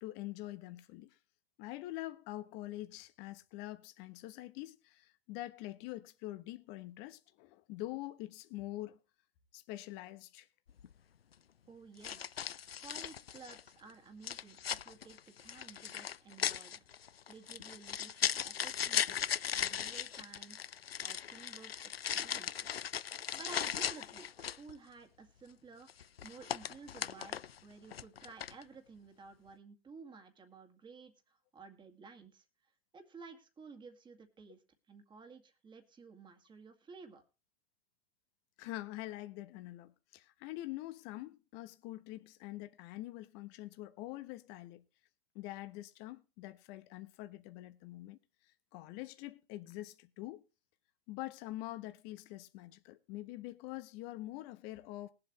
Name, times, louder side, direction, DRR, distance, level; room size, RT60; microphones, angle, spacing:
voice 1, 0.0-1.2 1.6-9.0 9.5-10.5 38.6-44.8 45.3-48.2 48.7-50.4 51.1-55.1, left 16 dB, 35° left, 1.1 m, -45 dB
sound 1, 10.7-10.9 12.0-13.7 14.2-24.7 25.9-27.6 27.9-28.6, left 9 dB, 85° left, 0.5 m, -38 dB
voice 2, 11.7-12.3 12.8-16.9 17.3-20.6 21.0-22.8 23.1-32.4 32.9-34.6 34.9-37.2, right 4 dB, 15° right, 2.2 m, -54 dB
20.5 x 7.8 x 3.1 m
figure-of-eight pair, 110°, 29 cm